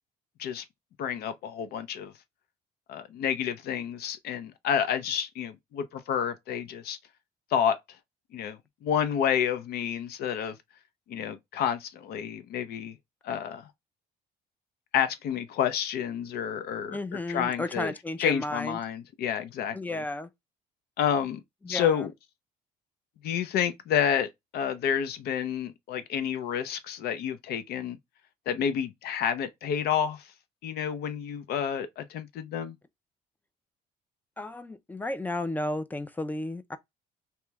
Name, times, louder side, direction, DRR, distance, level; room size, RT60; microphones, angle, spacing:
voice 1, 1.0-2.1 2.9-7.0 7.5-7.8 8.3-10.5 11.1-12.9 13.2-13.7 14.9-17.0 17.3-17.9 18.2-20.0 21.0-21.4 21.7-22.1 23.2-28.0 28.5-30.2 30.6-32.8, left 8 dB, 70° left, 0.5 m, -29 dB
voice 2, 16.9-18.8 19.7-20.3 21.6-22.1 34.4-36.8, left 2 dB, 10° left, 0.3 m, -33 dB
2.9 x 2.1 x 3.3 m
cardioid pair, 110°, 17 cm